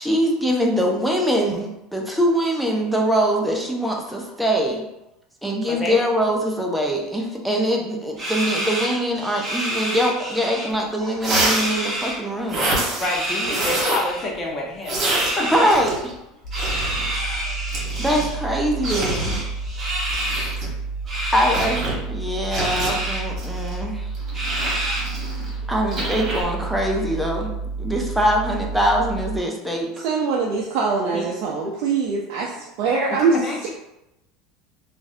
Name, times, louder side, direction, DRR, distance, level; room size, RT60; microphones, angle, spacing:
voice 1, 0.0-4.8 5.4-12.8 15.5-16.1 17.3-17.6 18.0-19.4 21.3-24.1 25.6-27.5 27.8-30.0, equal, ahead, -1 dB, 0.6 m, -23 dB
sound 1, 8.2-10.7 10.9-12.2 12.9-14.2 15.0-15.8 16.5-18.4 18.8-20.5 21.1-21.8 22.5-23.2 23.6-23.7 24.3-25.2, right 1 dB, 20° right, 1.3 m, -28 dB
sound 2, 10.7-10.8 11.2-11.7 12.5-13.1 13.5-14.1 14.8-16.2 16.5-17.0 17.7-18.3 18.8-19.4 20.1-20.7 21.5-22.0 22.5-22.9 23.4-25.5 25.9-26.4, right 1 dB, 40° right, 1.4 m, -26 dB
voice 2, 13.0-15.7 31.1-31.3 32.1-32.2 33.1-33.7, left 2 dB, 30° left, -1 dB, 0.8 m, -28 dB
sound 3, 16.4-29.4, right 4 dB, 80° left, 0.5 m, -30 dB
voice 3, 30.0-33.3, right 5 dB, 65° right, -2 dB, 0.4 m, -23 dB
3.0 x 2.5 x 2.7 m, 0.87 s
supercardioid pair, 105°, 0 cm